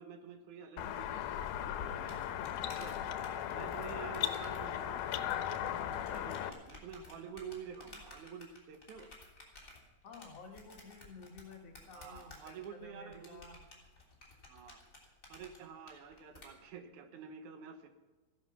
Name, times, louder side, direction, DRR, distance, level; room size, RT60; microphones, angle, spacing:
voice 1, 0.0-2.3 2.7-3.0 3.5-5.1 6.1-9.1 11.9-13.4 14.5-14.8 15.3-17.9, right 6 dB, 70° right, 8 dB, 2.4 m, -49 dB
sound 1, 0.8-6.5, left 10 dB, 80° left, 2.3 m, -37 dB
sound 2, 1.5-16.5, left 2 dB, 25° left, 3.2 m, -56 dB
voice 2, 10.0-13.6, left 4 dB, 60° left, 3 dB, 2.2 m, -53 dB
14.5 x 11.0 x 5.9 m, 1.2 s
omnidirectional pair, 3.7 m